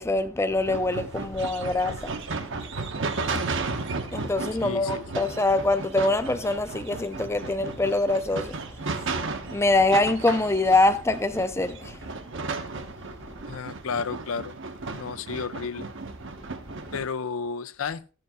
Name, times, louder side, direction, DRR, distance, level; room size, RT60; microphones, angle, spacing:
voice 1, 0.0-2.2 4.1-8.6 9.5-12.0, left 2 dB, 15° left, 0.5 m, -24 dB
sound 1, 0.6-17.1, right 3 dB, 60° right, 1.0 m, -34 dB
voice 2, 4.6-5.3 13.5-14.6 14.9-15.9 16.9-18.0, left 5 dB, 75° left, 0.5 m, -32 dB
12.5 x 7.8 x 3.6 m
head